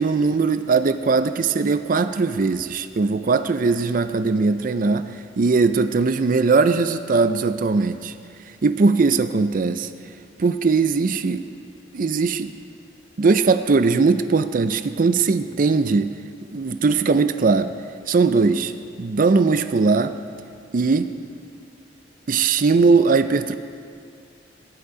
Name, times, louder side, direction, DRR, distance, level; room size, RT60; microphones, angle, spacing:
voice 1, 0.0-5.1 5.4-8.1 8.6-9.9 10.4-11.4 11.9-12.5 13.2-16.1 16.5-17.7 18.1-18.7 19.0-20.2 20.7-21.1 22.3-23.6, right 4 dB, 50° right, 11 dB, 0.5 m, -19 dB
20.0 x 11.0 x 4.8 m, 2.4 s
head